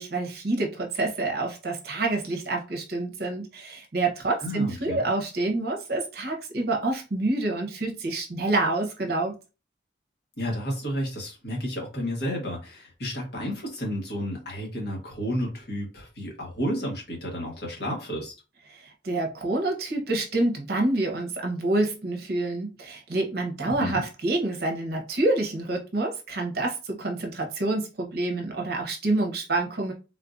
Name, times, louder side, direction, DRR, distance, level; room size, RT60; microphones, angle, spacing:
voice 1, 0.0-9.3 18.7-29.9, right 2 dB, 55° right, 0.8 m, -27 dB
voice 2, 4.4-5.0 10.4-18.3 23.6-24.0, equal, 55° left, 1.3 m, -31 dB
3.6 x 2.5 x 2.5 m
head